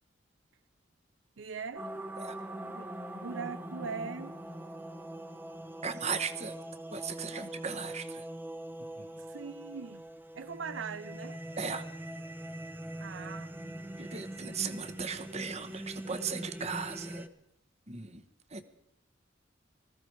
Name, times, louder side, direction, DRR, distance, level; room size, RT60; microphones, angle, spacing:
voice 1, 1.4-1.9 2.6-2.9 3.1-4.4 7.3-7.4 9.3-10.0 10.3-11.4 13.0-13.5, right 5 dB, 75° right, 0.6 m, -41 dB
sound 1, 1.8-17.3, right 1 dB, 10° right, 0.9 m, -42 dB
voice 2, 5.8-6.6 6.9-8.3 8.8-9.1 11.6-11.9 14.0-17.3 17.9-18.6, right 5 dB, 35° right, 1.2 m, -37 dB
20.0 x 15.5 x 4.8 m
head